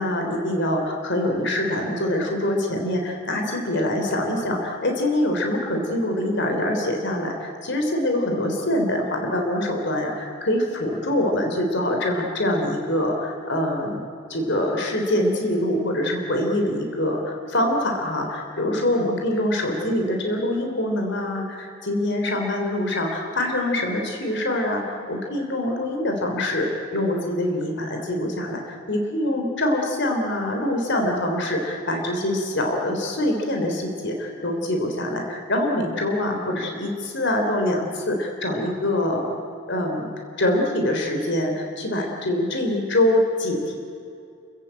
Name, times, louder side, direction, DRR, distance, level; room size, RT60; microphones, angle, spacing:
voice 1, 0.0-14.0 14.3-39.3 39.7-40.1 40.4-43.7, left 1 dB, 60° left, 2 dB, 3.4 m, -24 dB
30.0 x 15.5 x 8.9 m, 2.6 s
head